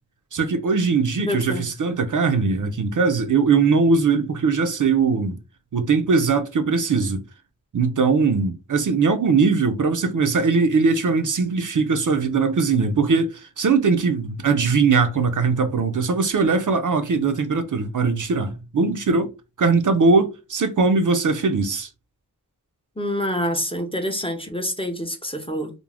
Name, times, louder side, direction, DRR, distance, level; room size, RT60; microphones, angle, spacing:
voice 1, 0.3-5.4 5.7-7.2 7.7-19.3 19.6-21.9, right 4 dB, 55° right, 0.4 m, -20 dB
voice 2, 1.2-1.6 23.0-25.7, equal, 15° left, 0.5 m, -26 dB
2.3 x 2.0 x 3.3 m
wide cardioid pair, 55°, 37 cm